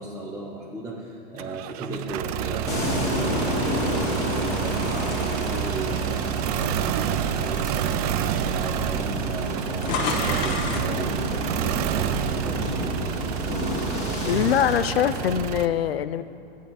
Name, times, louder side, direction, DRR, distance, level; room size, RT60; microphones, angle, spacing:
voice 1, 0.0-13.3, right 2 dB, 10° right, -3 dB, 1.1 m, -36 dB
sound 1, 1.4-15.7, right 12 dB, 40° right, 0.4 m, -29 dB
sound 2, 2.7-7.0 7.5-7.7 8.6-8.7 8.9-11.0, left 4 dB, 40° left, 1.3 m, -34 dB
sound 3, 2.7-15.4, left 1 dB, 20° left, 2.1 m, -30 dB
voice 2, 14.3-16.2, left 10 dB, 85° left, 14 dB, 0.5 m, -23 dB
14.5 x 8.7 x 4.2 m, 2.8 s
hypercardioid pair, 125°, 30 cm